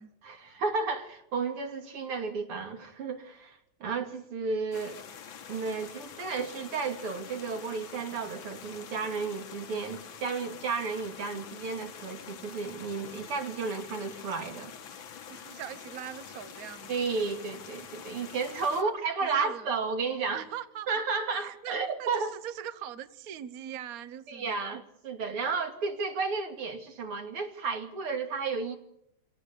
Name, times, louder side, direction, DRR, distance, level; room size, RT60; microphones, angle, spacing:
voice 1, 0.2-5.0 5.5-14.7 16.9-20.5 20.9-22.3 24.3-28.8, right 4 dB, 85° right, 5 dB, 3.5 m, -33 dB
sound 1, 4.7-18.8, left 7 dB, 70° left, 2.1 m, -46 dB
voice 2, 15.3-17.0 18.7-18.9 19.2-19.7 20.3-21.0 21.3-24.8, right 10 dB, 50° right, 13 dB, 1.3 m, -41 dB
25.5 x 18.0 x 6.9 m, 0.77 s
omnidirectional pair, 2.4 m